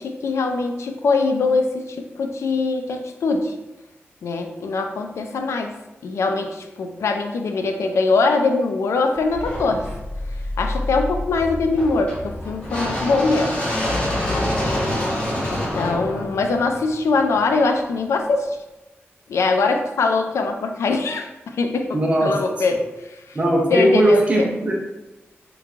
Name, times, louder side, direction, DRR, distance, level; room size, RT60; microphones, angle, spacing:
voice 1, 0.0-3.5 4.2-5.7 6.0-9.8 10.6-13.5 14.3-14.5 15.5-18.6 19.3-23.4 23.7-24.5, left 3 dB, 90° left, 5 dB, 0.4 m, -22 dB
sound 1, 9.3-17.4, left 1 dB, 25° left, 0.8 m, -26 dB
voice 2, 21.9-22.3 23.3-24.7, right 1 dB, 25° right, -3 dB, 0.6 m, -18 dB
3.4 x 3.1 x 2.4 m, 1.0 s
wide cardioid pair, 175°, 5 cm